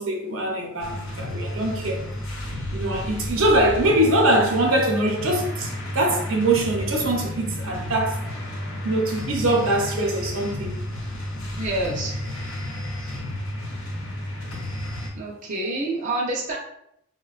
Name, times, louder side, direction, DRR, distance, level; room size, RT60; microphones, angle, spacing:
voice 1, 0.0-2.0 2.7-5.7 5.9-8.2 8.8-10.8, right 1 dB, 80° right, 0.7 m, -22 dB
sound 1, 0.8-15.1, left 1 dB, 85° left, 0.8 m, -32 dB
voice 2, 11.6-12.1 15.1-16.6, right 2 dB, 40° right, 0.5 m, -27 dB
4.3 x 2.2 x 2.4 m
head